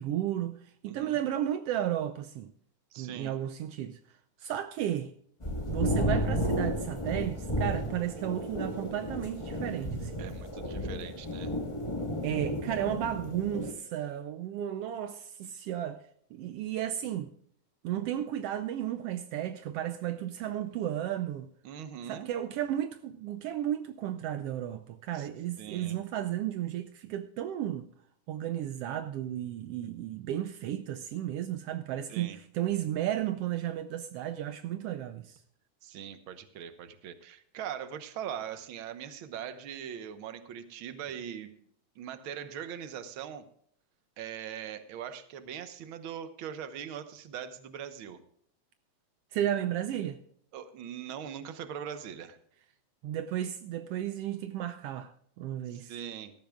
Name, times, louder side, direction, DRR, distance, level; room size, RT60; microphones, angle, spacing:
voice 1, 0.0-2.5 3.0-4.0 4.4-5.1 5.7-10.1 12.2-16.0 16.3-17.3 17.8-21.5 22.1-27.9 28.3-35.4 49.3-50.2 53.0-55.9, right 11 dB, 85° right, 1.4 m, -33 dB
voice 2, 0.8-1.2 2.9-3.3 10.2-11.5 21.6-22.3 25.1-25.3 25.6-26.0 32.1-32.4 35.8-41.5 41.9-43.4 44.2-48.2 50.5-52.4 55.7-56.3, right 9 dB, 60° right, 1.4 m, -41 dB
sound 1, 5.4-13.7, equal, 35° left, 0.4 m, -33 dB
17.5 x 13.5 x 2.4 m
omnidirectional pair, 3.4 m